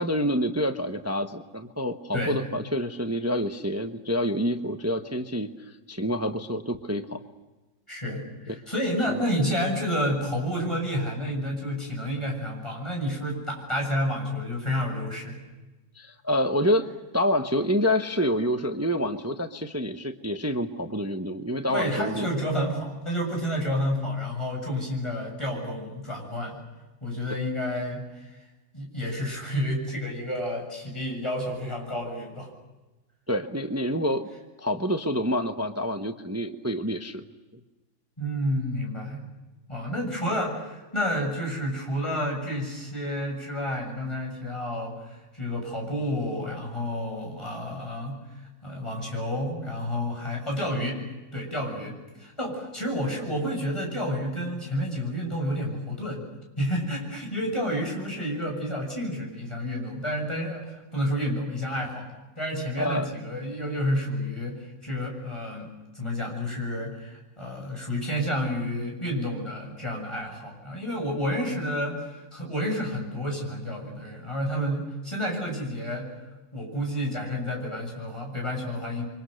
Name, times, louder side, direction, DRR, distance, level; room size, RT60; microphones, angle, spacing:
voice 1, 0.0-5.5 5.9-7.2 8.5-8.6 16.0-16.9 17.1-22.3 33.3-34.2 34.6-37.2 62.8-63.1, equal, 15° right, 7 dB, 0.7 m, -27 dB
voice 2, 2.1-2.5 7.9-15.4 21.7-26.6 27.0-28.4 28.7-32.5 38.2-39.3 39.7-51.0 51.3-56.2 56.6-62.1 62.4-76.1 76.5-79.1, equal, 15° left, 0 dB, 7.4 m, -30 dB
30.0 x 24.5 x 6.6 m, 1.1 s
omnidirectional pair, 1.9 m